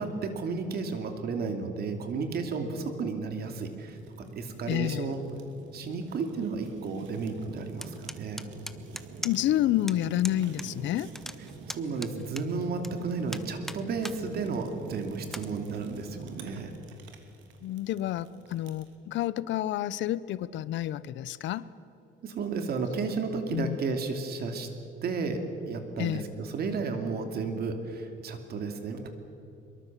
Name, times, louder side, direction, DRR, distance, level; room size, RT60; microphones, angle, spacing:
voice 1, 0.0-4.0 4.3-5.2 5.7-8.4 11.7-16.7 21.4-21.5 22.2-24.7 25.0-25.4 25.7-29.1, right 4 dB, 55° right, 6 dB, 2.7 m, -33 dB
Fire, 3.8-18.9, right 4 dB, 80° right, 2.8 m, -46 dB
voice 2, 4.7-5.1 9.2-11.1 17.6-21.7 23.5-23.8 26.0-26.2, left 13 dB, 75° left, 18 dB, 0.8 m, -29 dB
sound 1, 7.8-9.6 9.9-10.0 10.2-10.7 10.9-12.9 13.3-14.2 14.6-14.7 15.2-15.5, equal, ahead, 0.8 m, -39 dB
24.0 x 23.0 x 7.4 m, 2.9 s
cardioid pair, 160°, 19 cm